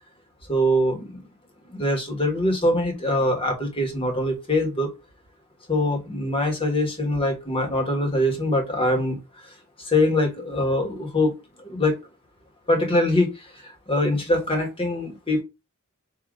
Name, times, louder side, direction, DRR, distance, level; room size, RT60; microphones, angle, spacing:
voice 1, 0.5-1.3 1.7-4.9 5.7-9.2 9.8-11.3 11.6-11.9 12.7-13.3 13.6-15.4, left 1 dB, 25° left, 2 dB, 1.4 m, -23 dB
3.9 x 2.8 x 4.8 m, 0.25 s
head